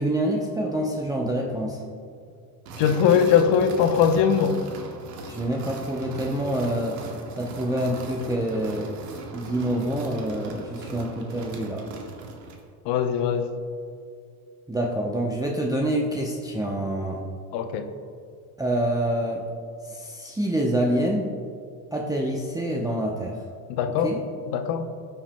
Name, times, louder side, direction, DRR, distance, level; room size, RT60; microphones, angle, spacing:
voice 1, 0.0-1.8 5.3-7.0 7.3-8.9 9.3-11.8 14.7-17.2 18.6-19.5 19.8-21.3 21.9-23.4 23.8-24.2, right 1 dB, 10° right, -1 dB, 0.7 m, -26 dB
sound 1, 2.7-12.7, right 3 dB, 90° right, 1.3 m, -39 dB
voice 2, 2.8-4.6 12.8-13.5 17.5-17.9 23.7-24.1 24.5-24.9, left 7 dB, 60° left, 7 dB, 0.9 m, -21 dB
15.0 x 5.9 x 2.2 m, 2.3 s
supercardioid pair, 90°, 46 cm